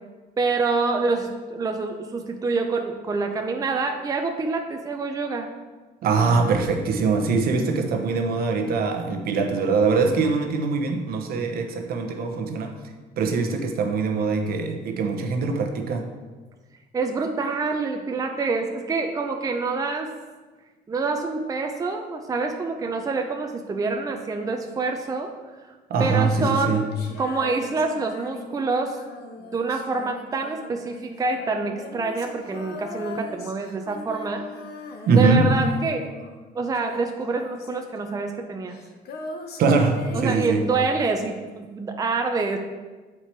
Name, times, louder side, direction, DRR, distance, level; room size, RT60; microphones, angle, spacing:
voice 1, 0.4-5.5 16.9-20.1 20.9-25.3 26.0-26.9 27.2-29.0 29.4-34.4 35.1-36.1 36.5-38.8 40.1-42.6, right 4 dB, 20° right, 4 dB, 0.6 m, -26 dB
voice 2, 6.0-12.7 13.2-16.1 25.9-26.9 35.1-35.5 39.6-40.6, right 4 dB, 65° right, 4 dB, 1.0 m, -22 dB
Female singing, 26.1-36.5 36.7-41.2, left 3 dB, 70° left, 0.9 m, -40 dB
7.5 x 4.6 x 4.5 m, 1.3 s
cardioid pair, 110°, 17 cm